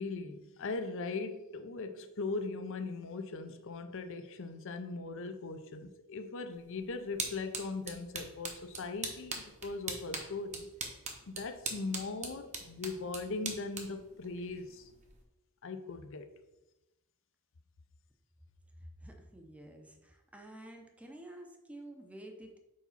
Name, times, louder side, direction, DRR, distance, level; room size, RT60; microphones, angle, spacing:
voice 1, 0.0-10.7 11.3-14.9 15.6-16.3, left 3 dB, 65° left, 0.6 m, -39 dB
sound 1, 6.5-15.2, right 4 dB, 35° right, 1.0 m, -43 dB
voice 2, 18.8-22.6, right 1 dB, 5° right, 0.7 m, -50 dB
4.8 x 4.0 x 5.6 m
head